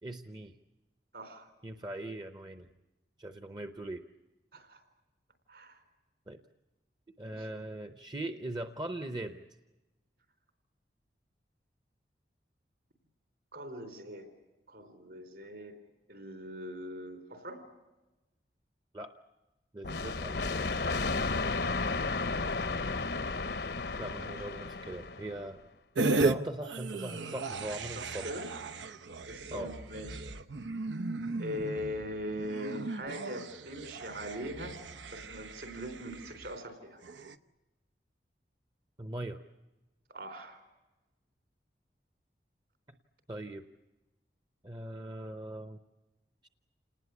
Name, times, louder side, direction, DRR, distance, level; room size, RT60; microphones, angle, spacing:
voice 1, 0.0-0.5 1.6-2.7 3.2-4.0 6.3-6.4 7.2-9.4 18.9-19.2 19.7-20.4 24.0-25.6 26.2-28.3 29.5-29.7 39.0-39.4 43.3-43.6 44.6-45.8 46.4-46.5, right 1 dB, 25° right, 8 dB, 0.8 m, -40 dB
voice 2, 1.1-1.5 4.5-4.8 5.5-5.8 7.2-7.5 13.5-14.3 14.7-15.7 16.1-17.6 28.0-28.5 29.3-30.3 31.4-34.8 35.1-37.0 40.1-40.6, equal, 65° right, 7 dB, 4.0 m, -41 dB
sound 1, 19.8-25.4, left 3 dB, 65° left, 0.9 m, -33 dB
sound 2, 25.9-26.3 26.6-36.5 37.0-37.3, right 3 dB, 90° right, 0.8 m, -36 dB
28.0 x 19.5 x 8.3 m, 1.1 s
head